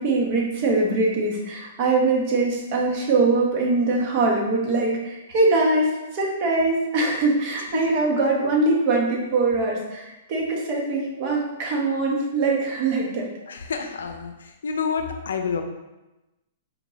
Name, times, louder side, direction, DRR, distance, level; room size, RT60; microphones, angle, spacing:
voice 1, 0.0-13.3, right 3 dB, 40° right, -1 dB, 1.0 m, -22 dB
voice 2, 13.5-15.6, left 6 dB, 90° left, 6 dB, 0.4 m, -28 dB
4.4 x 2.9 x 2.7 m, 1.0 s
hypercardioid pair, 145°, 0 cm